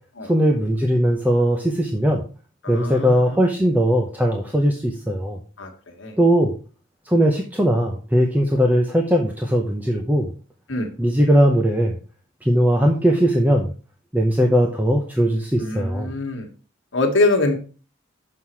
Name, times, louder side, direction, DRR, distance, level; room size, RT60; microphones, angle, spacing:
voice 1, 0.2-2.2 2.7-5.4 6.2-6.5 7.1-10.3 11.0-12.0 12.4-13.7 14.1-16.1, equal, 10° right, 2 dB, 0.8 m, -19 dB
voice 2, 2.6-3.4 5.6-6.2 10.7-10.9 15.6-16.5 16.9-17.6, left 2 dB, 70° left, 2 dB, 1.6 m, -23 dB
6.4 x 5.6 x 4.5 m, 0.37 s
head